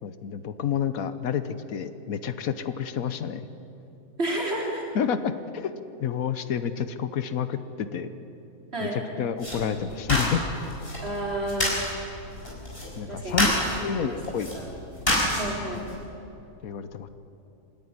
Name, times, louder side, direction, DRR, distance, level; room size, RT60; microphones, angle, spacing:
voice 1, 0.0-3.5 4.9-5.7 6.0-8.1 8.8-10.4 13.0-13.5 13.8-14.5 16.6-17.1, left 8 dB, 80° left, 12 dB, 1.3 m, -29 dB
voice 2, 4.2-4.8 8.7-9.0 11.0-11.8 13.1-13.4 14.0-14.2 14.5-14.7 15.3-15.9, right 1 dB, 45° right, -2 dB, 4.0 m, -30 dB
sound 1, 9.4-15.9, left 1 dB, 40° left, 5.7 m, -29 dB
27.0 x 10.5 x 9.5 m, 2.8 s
omnidirectional pair, 1.5 m